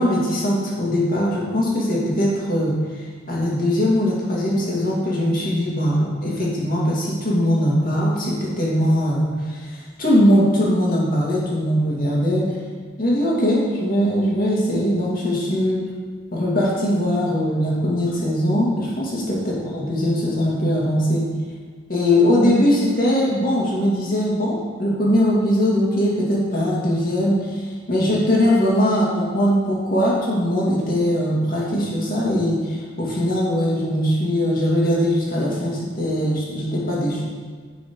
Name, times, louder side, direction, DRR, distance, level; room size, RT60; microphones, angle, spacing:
voice 1, 0.0-12.5 13.0-15.8 16.3-21.2 21.9-37.2, equal, 45° left, -5 dB, 2.2 m, -21 dB
7.3 x 5.6 x 5.2 m, 1.5 s
head